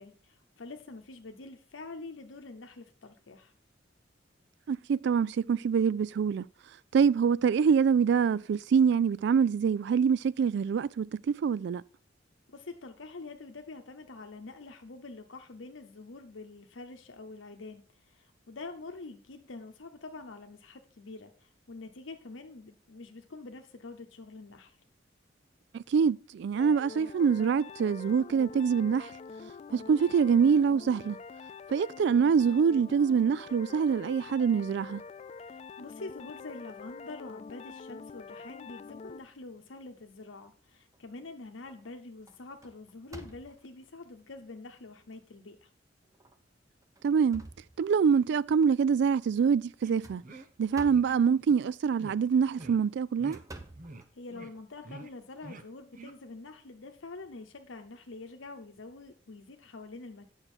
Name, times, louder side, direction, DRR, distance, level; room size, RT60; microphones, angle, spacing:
voice 1, 0.0-3.5 12.5-24.8 35.4-45.7 54.1-60.3, left 3 dB, 85° left, 0.9 m, -46 dB
voice 2, 4.7-6.4 6.9-11.8 25.7-29.1 29.7-31.2 31.7-35.0 47.0-47.5 47.8-50.2 50.6-53.4, right 6 dB, 60° right, 0.3 m, -25 dB
sound 1, 26.5-39.2, left 5 dB, 35° left, 0.3 m, -46 dB
sound 2, 40.6-41.2 41.7-41.9 42.3-43.8 44.5-44.6 45.1-45.2 46.1-46.4 46.8-48.3 49.8-51.3 52.4-54.6, right 2 dB, 20° right, 0.8 m, -50 dB
sound 3, 49.8-49.9 50.2-50.5 50.9-51.0 51.4-51.5 52.0-52.2 52.6-52.8 53.2-53.4 53.8-54.0 54.3-54.5 54.8-55.1 55.4-55.6 55.9-56.1, right 2 dB, 45° right, 0.8 m, -46 dB
8.9 x 6.4 x 4.3 m
head